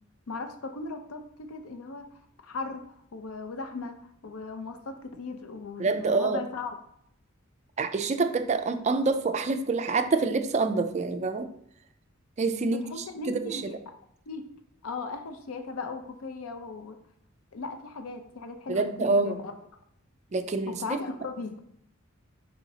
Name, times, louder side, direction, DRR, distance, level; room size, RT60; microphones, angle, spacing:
voice 1, 0.3-2.1 2.4-2.8 3.1-4.0 4.2-6.7 12.7-13.8 14.3-14.5 14.8-17.0 17.5-19.5 20.8-21.6, left 4 dB, 75° left, 6 dB, 0.5 m, -37 dB
voice 2, 5.8-6.4 7.8-11.5 12.4-12.8 13.3-13.6 18.7-19.4 20.3-20.7, right 3 dB, 35° right, 7 dB, 0.4 m, -26 dB
4.8 x 4.1 x 2.7 m, 0.70 s
head